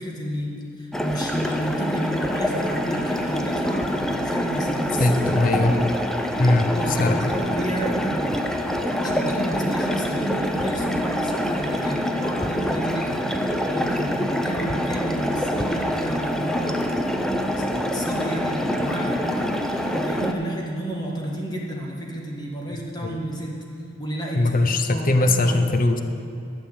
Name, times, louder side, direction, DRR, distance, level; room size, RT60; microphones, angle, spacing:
voice 1, 0.0-5.4 6.7-8.4 9.0-23.5 24.0-24.5 24.9-25.6, equal, 20° left, -2 dB, 1.6 m, -31 dB
sound 1, 0.9-20.3, equal, 5° left, 0.6 m, -25 dB
voice 2, 5.0-5.8 6.4-7.3 22.7-23.2 24.3-26.0, left 2 dB, 45° left, 8 dB, 0.7 m, -21 dB
12.0 x 6.2 x 8.1 m, 2.5 s
head